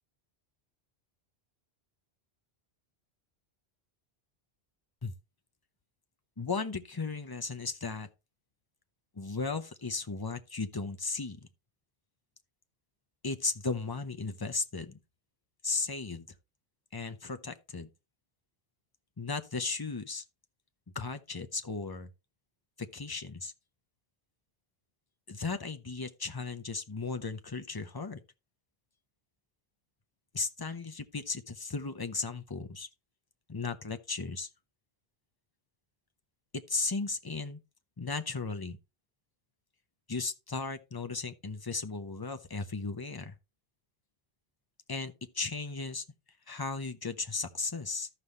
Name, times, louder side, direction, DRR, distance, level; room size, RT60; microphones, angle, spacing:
voice 1, 6.4-8.1 9.1-11.4 13.2-15.0 15.6-16.3 16.9-17.9 19.2-20.2 20.9-22.1 22.8-23.5 25.3-28.2 30.3-32.9 33.5-34.5 36.5-37.6 38.0-38.8 40.1-43.3 44.9-46.0 46.5-48.1, left 4 dB, 25° left, 0.7 m, -36 dB
13.5 x 5.6 x 3.2 m
omnidirectional pair, 1.1 m